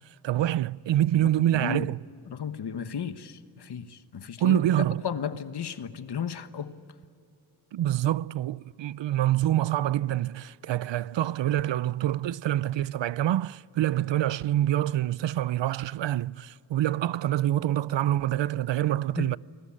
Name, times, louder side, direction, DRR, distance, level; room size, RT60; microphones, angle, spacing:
voice 1, 0.2-2.0 4.4-5.1 7.7-19.4, right 13 dB, 85° right, 0.6 m, -26 dB
voice 2, 1.5-1.9 2.3-4.6 5.0-6.7 19.2-19.3, left 7 dB, 65° left, 1.3 m, -34 dB
28.0 x 20.5 x 9.9 m
wide cardioid pair, 135°, 43 cm